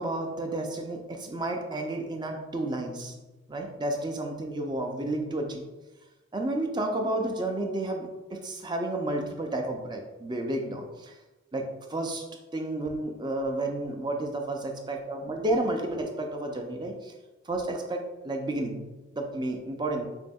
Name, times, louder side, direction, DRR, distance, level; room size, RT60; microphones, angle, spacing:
voice 1, 0.0-3.2 3.5-5.6 6.3-11.2 11.5-12.3 12.5-17.1 17.5-20.1, right 1 dB, 20° right, 3 dB, 0.4 m, -31 dB
6.7 x 2.7 x 2.3 m, 1.1 s
head